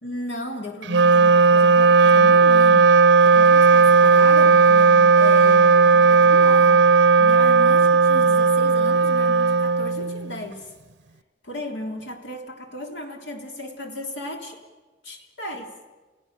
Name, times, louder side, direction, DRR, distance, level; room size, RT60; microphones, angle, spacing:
voice 1, 0.0-10.7 11.4-14.6 15.0-15.7, left 1 dB, 75° left, 3 dB, 3.4 m, -35 dB
Wind instrument woodwind instrument, 0.8-10.4, right 4 dB, 70° right, 0.8 m, -15 dB
29.5 x 16.5 x 6.7 m, 1.3 s
head